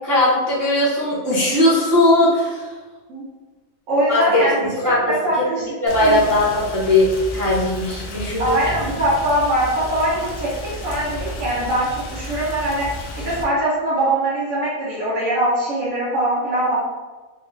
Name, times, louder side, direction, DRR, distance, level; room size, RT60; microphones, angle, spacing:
voice 1, 0.0-2.7 4.1-4.4 4.8-8.7, left 1 dB, 25° right, -8 dB, 0.5 m, -19 dB
voice 2, 3.9-5.7 6.0-6.2 8.4-10.5 10.8-12.9 13.2-16.8, right 1 dB, 65° right, -11 dB, 1.5 m, -22 dB
Rain, 5.9-13.4, left 1 dB, 75° left, 0.9 m, -32 dB
3.7 x 2.1 x 3.3 m, 1.3 s
omnidirectional pair, 1.4 m